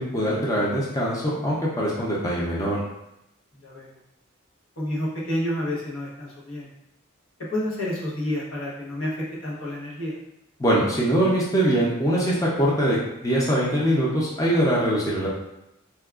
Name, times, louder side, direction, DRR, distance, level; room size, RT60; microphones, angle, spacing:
voice 1, 0.0-2.8 10.6-13.0 13.2-15.3, right 1 dB, 15° left, -6 dB, 0.6 m, -22 dB
voice 2, 3.5-3.9 4.8-6.7 7.4-10.2, left 1 dB, 75° left, -5 dB, 1.0 m, -29 dB
4.4 x 2.3 x 2.3 m, 0.85 s
head